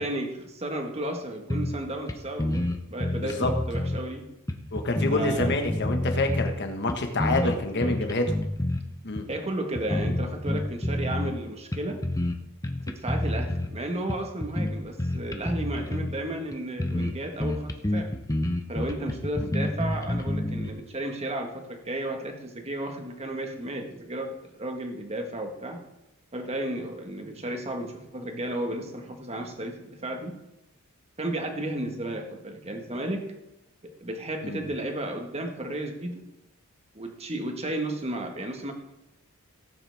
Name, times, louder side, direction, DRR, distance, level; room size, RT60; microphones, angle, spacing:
voice 1, 0.0-4.3 5.1-5.5 7.2-8.0 9.3-12.0 12.9-18.1 18.7-25.8 26.3-30.3 31.2-33.3 33.8-36.2 36.9-38.7, right 1 dB, 30° right, 4 dB, 1.6 m, -33 dB
sound 1, 1.5-2.1 2.4-4.0 4.5-6.6 6.9-8.8 9.2-9.3 9.7-11.4 11.7-12.4 12.6-13.7 14.1-16.2 16.5-16.6 16.8-17.1 17.4-20.7, left 1 dB, 15° left, 0.7 m, -28 dB
voice 2, 3.2-3.5 4.7-8.2 9.0-9.3 19.4-19.5 34.4-34.6, left 2 dB, 50° left, 5 dB, 1.5 m, -27 dB
17.0 x 8.9 x 3.5 m, 0.89 s
head